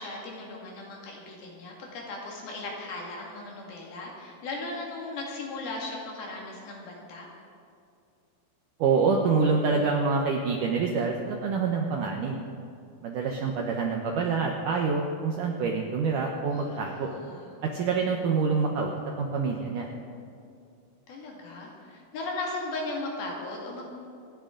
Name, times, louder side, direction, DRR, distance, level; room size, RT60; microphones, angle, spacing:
voice 1, 0.0-7.3 16.5-17.5 21.1-23.8, left 2 dB, 65° left, -2 dB, 3.9 m, -37 dB
voice 2, 8.8-12.4 13.0-17.1 17.6-19.9, right 4 dB, 75° right, 1 dB, 2.0 m, -26 dB
28.0 x 10.0 x 3.8 m, 2.5 s
omnidirectional pair, 4.9 m